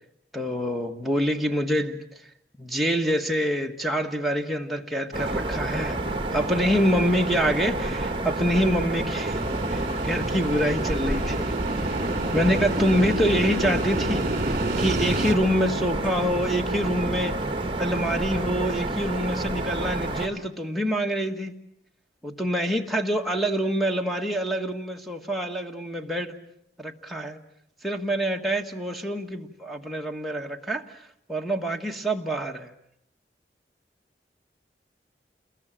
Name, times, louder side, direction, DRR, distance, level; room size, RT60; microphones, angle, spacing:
voice 1, 0.3-2.0 2.6-6.0 6.3-9.4 9.7-11.5 11.8-12.0 12.3-17.4 17.8-21.5 22.2-26.4 26.8-27.4 27.8-30.8 31.3-32.7, equal, ahead, 1.6 m, -26 dB
sound 1, 5.1-20.3, right 2 dB, 30° right, 1.6 m, -29 dB
sound 2, 9.3-15.3, right 2 dB, 50° right, 2.5 m, -30 dB
29.0 x 21.5 x 7.6 m
head